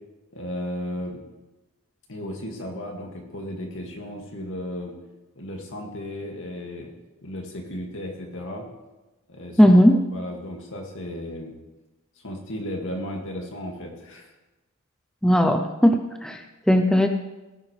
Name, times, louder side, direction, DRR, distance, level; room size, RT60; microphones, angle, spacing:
voice 1, 0.3-1.2 2.1-4.9 5.4-6.9 7.2-8.7 9.3-9.7 10.1-11.5 12.2-14.3, left 1 dB, 60° left, 2 dB, 2.1 m, -34 dB
voice 2, 9.6-10.0 15.2-17.1, equal, 5° left, 5 dB, 0.5 m, -17 dB
18.0 x 9.9 x 3.3 m, 1.1 s
head